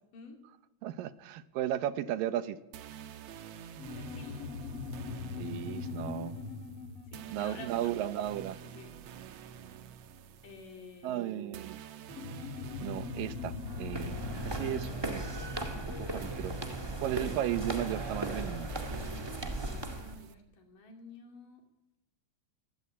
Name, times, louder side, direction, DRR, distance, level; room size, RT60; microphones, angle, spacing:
voice 1, 0.8-2.6 5.4-6.4 7.3-8.6 11.0-11.8 12.8-15.2 15.9-18.7, right 12 dB, 90° right, 13 dB, 2.7 m, -35 dB
sound 1, 2.7-20.3, right 8 dB, 65° right, 1.7 m, -48 dB
sound 2, 3.7-8.7 12.1-17.0, left 5 dB, 50° left, 2.2 m, -42 dB
voice 2, 3.9-4.4 7.1-7.8 8.6-9.0 9.6-9.8 10.4-11.2 19.8-21.6, left 4 dB, 75° left, 4 dB, 4.6 m, -51 dB
sound 3, 13.6-20.1, right 1 dB, 15° right, 1.1 m, -37 dB
24.0 x 17.5 x 8.5 m, 1.0 s
omnidirectional pair, 3.8 m